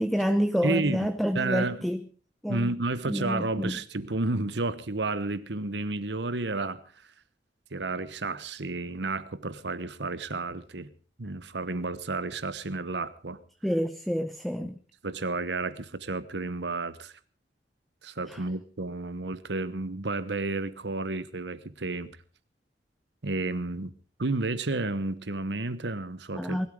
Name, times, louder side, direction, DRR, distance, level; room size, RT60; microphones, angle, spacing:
voice 1, 0.0-2.0 2.4-2.7 3.1-3.8 13.6-14.8 18.3-18.4 26.4-26.7, equal, ahead, 8 dB, 0.7 m, -28 dB
voice 2, 0.6-1.1 1.3-1.8 2.5-6.8 7.7-10.9 11.2-13.4 15.0-17.1 18.0-22.2 23.2-23.9 24.2-26.6, right 3 dB, 80° right, 15 dB, 1.1 m, -31 dB
20.5 x 12.5 x 5.0 m, 0.40 s
head